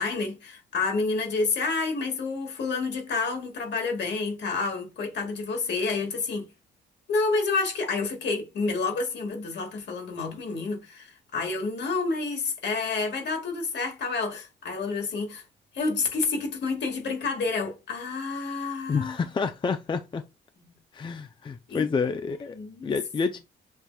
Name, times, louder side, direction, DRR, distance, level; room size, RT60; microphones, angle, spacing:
voice 1, 0.0-6.5 7.1-15.4 15.7-19.2 21.7-21.8 22.5-23.0, left 4 dB, 60° left, 1.8 m, -29 dB
voice 2, 18.9-20.2 20.9-22.6 22.8-23.4, left 5 dB, 25° left, 0.4 m, -28 dB
6.5 x 2.8 x 2.2 m
cardioid pair, 90°, 20 cm